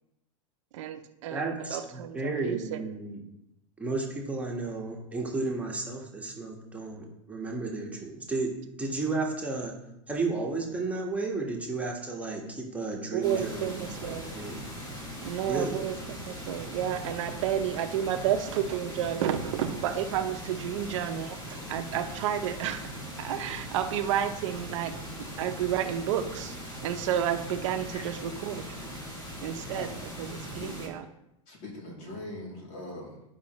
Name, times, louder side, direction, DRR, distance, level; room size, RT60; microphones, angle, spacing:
voice 1, 0.7-2.8 13.1-14.3 15.2-22.9 23.2-26.6 26.8-28.8 29.4-29.9 30.2-31.0, right 10 dB, 70° right, 7 dB, 0.8 m, -31 dB
voice 2, 1.3-3.2 3.8-9.7 10.1-14.6 15.5-15.8, right 3 dB, 10° right, -1 dB, 1.6 m, -33 dB
sound 1, 13.2-30.9, equal, 25° left, 2.9 m, -40 dB
voice 3, 30.4-30.8 31.5-33.2, left 1 dB, 50° left, -2 dB, 3.1 m, -41 dB
11.0 x 5.7 x 3.2 m, 0.88 s
hypercardioid pair, 120°, 17 cm